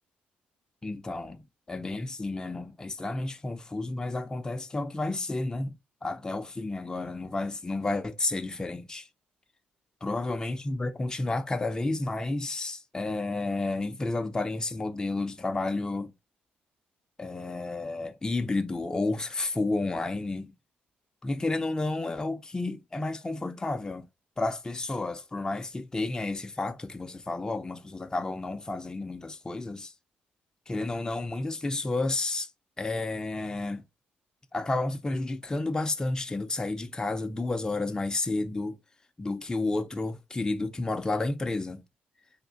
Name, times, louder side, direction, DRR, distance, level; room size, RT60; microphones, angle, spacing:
voice 1, 0.8-1.4 1.7-5.8 6.0-9.1 10.0-16.1 17.2-20.5 21.2-24.1 24.4-29.9 30.7-32.5 32.8-33.8 34.5-38.8 39.2-41.8, left 2 dB, 20° left, 0.6 m, -31 dB
3.6 x 2.6 x 3.9 m
cardioid pair, 80°, 4 cm